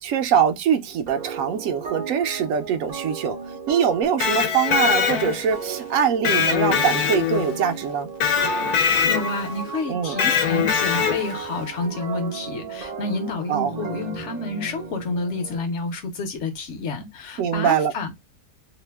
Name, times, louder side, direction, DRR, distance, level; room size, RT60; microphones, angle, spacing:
voice 1, 0.0-8.1 9.9-10.2 13.5-13.7 17.4-17.9, right 8 dB, 70° right, 0.9 m, -23 dB
sound 1, 1.1-15.7, right 5 dB, 55° right, 0.4 m, -35 dB
Electric guitar, 4.0-5.6 6.2-7.6 8.2-9.5 10.2-11.4, left 7 dB, 90° left, 1.1 m, -22 dB
voice 2, 8.7-18.1, left 3 dB, 55° left, 1.0 m, -29 dB
2.8 x 2.1 x 3.2 m
omnidirectional pair, 1.6 m